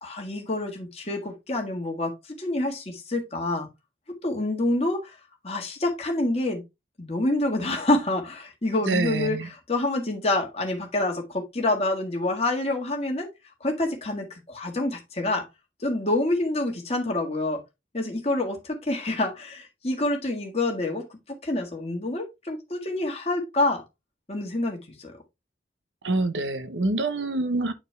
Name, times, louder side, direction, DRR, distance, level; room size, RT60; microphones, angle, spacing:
voice 1, 0.0-2.1 2.4-3.7 4.2-5.2 5.4-6.6 7.0-13.3 13.6-15.5 15.8-17.6 17.9-21.1 21.4-23.8 24.3-25.1, left 2 dB, 35° left, 1.8 m, -27 dB
voice 2, 8.9-9.5 26.0-27.7, right 2 dB, 85° right, 0.9 m, -26 dB
8.9 x 4.4 x 3.3 m
head